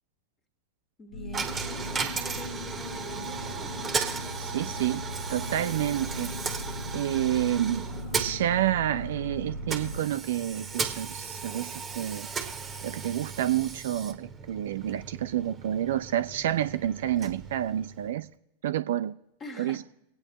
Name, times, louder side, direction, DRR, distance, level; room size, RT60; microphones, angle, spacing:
voice 1, 1.0-3.9 19.4-19.8, left 2 dB, 25° left, 5 dB, 1.7 m, -45 dB
sound 1, 1.1-10.0, left 1 dB, 60° left, 0.9 m, -39 dB
Coin (dropping), 1.3-18.3, right 5 dB, 20° right, 1.2 m, -36 dB
voice 2, 4.4-5.0 5.3-6.3 6.9-7.8 8.2-12.3 12.8-18.3 18.6-19.1 19.6-19.8, right 12 dB, 55° right, 12 dB, 0.4 m, -29 dB
24.0 x 8.8 x 3.0 m, 0.87 s
figure-of-eight pair, 90°, 0 cm